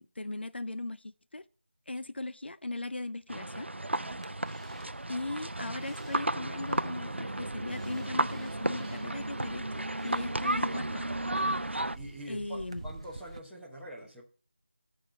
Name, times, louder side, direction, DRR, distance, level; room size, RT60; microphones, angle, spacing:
voice 1, 0.0-1.4 1.9-3.7 5.1-11.1 12.3-12.8, left 2 dB, 65° left, 0.6 m, -38 dB
sound 1, 3.3-12.0, right 1 dB, 85° right, 0.5 m, -33 dB
voice 2, 3.9-4.3 12.0-14.2, equal, ahead, 1.0 m, -45 dB
sound 2, 4.0-13.4, right 3 dB, 30° right, 0.5 m, -49 dB
13.0 x 4.3 x 5.8 m
figure-of-eight pair, 165°, 6 cm